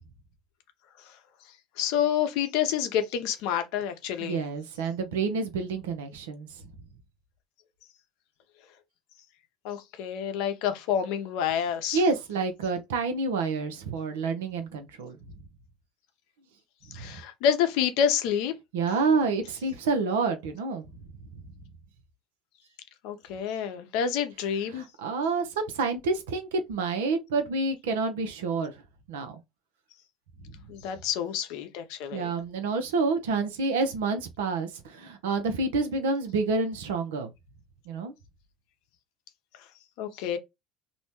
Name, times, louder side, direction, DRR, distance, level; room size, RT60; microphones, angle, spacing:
voice 1, 1.8-4.4 9.6-12.0 16.9-18.5 23.0-24.9 30.7-32.3 40.0-40.4, left 8 dB, 75° left, 0.6 m, -28 dB
voice 2, 4.2-6.5 11.9-15.2 17.0-17.1 18.7-20.8 24.7-28.7 29.1-29.4 32.1-37.3 37.9-38.1, right 4 dB, 90° right, 0.6 m, -28 dB
2.7 x 2.1 x 2.9 m
supercardioid pair, 85°, 0 cm